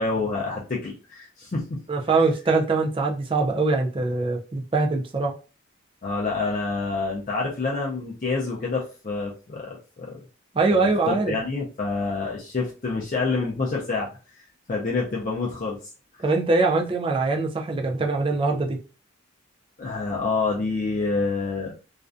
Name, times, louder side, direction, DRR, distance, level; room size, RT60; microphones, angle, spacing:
voice 1, 0.0-1.6 6.0-10.2 10.7-14.1 14.7-15.8 19.8-21.8, left 3 dB, 40° left, 0.4 m, -27 dB
voice 2, 1.9-5.3 10.5-11.3 16.2-18.8, right 3 dB, 25° right, 0.4 m, -23 dB
2.4 x 2.2 x 2.5 m
head